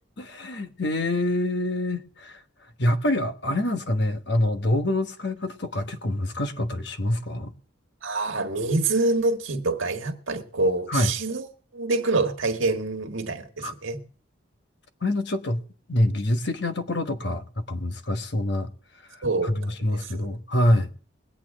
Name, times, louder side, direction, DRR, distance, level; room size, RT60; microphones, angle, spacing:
voice 1, 0.2-2.4 2.8-7.5 10.9-11.1 13.6-13.7 15.0-15.6 15.9-18.7 19.1-20.9, left 1 dB, 60° left, 1.2 m, -26 dB
voice 2, 8.0-11.5 11.7-14.0 19.2-19.7 20.0-20.3, right 3 dB, 80° right, 1.5 m, -26 dB
21.5 x 8.6 x 3.6 m
head